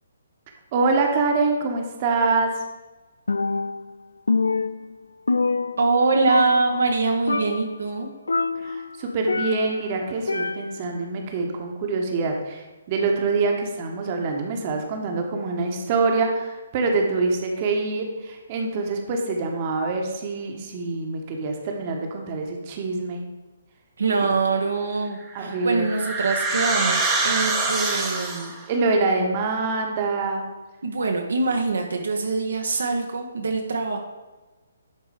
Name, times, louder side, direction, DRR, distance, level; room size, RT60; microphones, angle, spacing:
voice 1, 0.7-2.5 8.6-23.2 25.3-25.8 28.7-30.4, right 3 dB, 35° right, 2 dB, 1.3 m, -25 dB
Percussion, 3.3-4.0 4.3-6.0 6.3-7.0 7.3-7.8 8.3-9.9 10.3-10.9, left 3 dB, 70° left, 0.3 m, -26 dB
voice 2, 5.8-8.1 24.0-28.5 30.8-34.0, right 3 dB, 65° right, 2 dB, 1.1 m, -24 dB
sound 1, 25.2-28.7, right 3 dB, 10° right, 1.1 m, -25 dB
11.5 x 4.6 x 4.8 m, 1.2 s
figure-of-eight pair, 135°, 0 cm